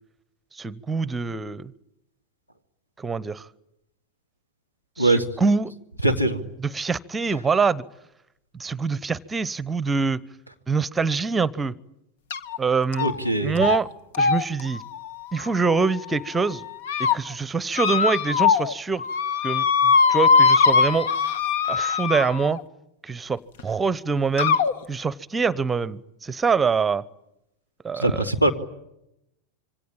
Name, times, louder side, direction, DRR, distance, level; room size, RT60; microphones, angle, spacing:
voice 1, 0.5-1.7 3.0-3.5 5.0-5.7 6.7-7.8 8.5-10.2 10.7-11.7 12.6-13.1 13.4-13.9 14.2-14.8 15.3-16.6 17.0-19.0 19.4-21.1 21.7-22.6 23.0-24.6 24.9-27.0 27.8-28.2, right 4 dB, 15° right, 1.0 m, -24 dB
voice 2, 6.0-6.4 13.0-13.6 27.9-28.5, right 2 dB, 85° left, 2.6 m, -21 dB
sound 1, 12.3-12.6 12.9-13.3 13.6-13.8 14.1-16.1 16.6-17.2 17.7-18.7 19.0-22.6 23.6-23.7 24.4-24.7, left 5 dB, 55° left, 1.4 m, -21 dB
27.0 x 24.5 x 8.9 m
figure-of-eight pair, 90°, 0 cm